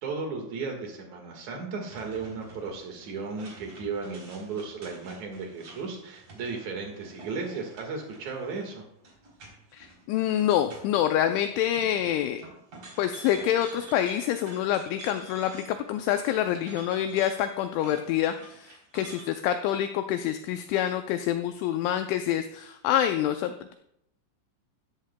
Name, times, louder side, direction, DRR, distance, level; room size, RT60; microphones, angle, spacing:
voice 1, 0.0-8.8, right 4 dB, 65° right, 2 dB, 1.8 m, -35 dB
sound 1, 1.8-11.4 11.7-16.0 16.3-19.3, right 2 dB, 35° right, 3.8 m, -49 dB
voice 2, 9.7-12.4 13.0-23.7, left 11 dB, 90° left, 8 dB, 2.6 m, -27 dB
16.0 x 13.0 x 2.2 m, 0.77 s
omnidirectional pair, 6.0 m